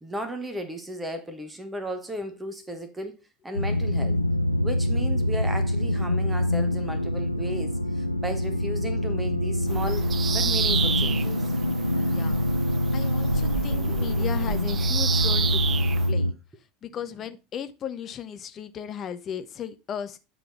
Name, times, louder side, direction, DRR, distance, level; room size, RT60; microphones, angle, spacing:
voice 1, 0.0-3.1 3.4-4.2 4.6-11.4 13.9-14.0, right 1 dB, 10° right, 1.2 m, -35 dB
sound 1, 3.5-16.3, left 1 dB, 85° left, 0.4 m, -25 dB
Bird vocalization bird call bird song, 9.7-16.1, right 7 dB, 25° right, 0.5 m, -31 dB
voice 2, 12.1-12.5 12.9-15.6 16.1-16.3 16.8-20.2, left 8 dB, 35° left, 0.8 m, -36 dB
9.7 x 3.8 x 4.4 m
figure-of-eight pair, 75°, 0 cm